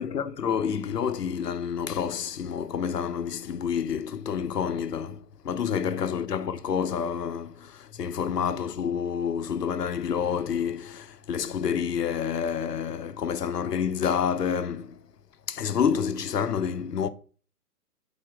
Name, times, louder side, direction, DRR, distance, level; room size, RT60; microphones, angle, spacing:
voice 1, 0.0-15.0 15.5-17.1, left 7 dB, 80° left, 0.9 m, -28 dB
8.7 x 4.4 x 3.5 m
hypercardioid pair, 135°, 47 cm